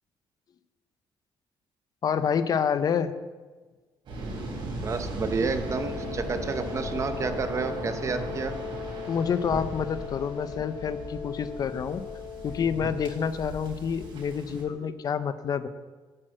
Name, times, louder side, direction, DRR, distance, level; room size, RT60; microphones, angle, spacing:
voice 1, 2.0-3.1 9.1-12.0 12.4-15.7, left 7 dB, 45° left, 12 dB, 0.5 m, -28 dB
Waves surf, 4.1-14.6, right 1 dB, 65° right, 3.7 m, -37 dB
voice 2, 4.8-8.5, right 4 dB, 35° right, 9 dB, 0.8 m, -30 dB
Wind instrument woodwind instrument, 5.6-13.5, left 7 dB, 30° left, 2.9 m, -39 dB
8.7 x 6.2 x 7.6 m, 1.3 s
cardioid pair, 120°, 9 cm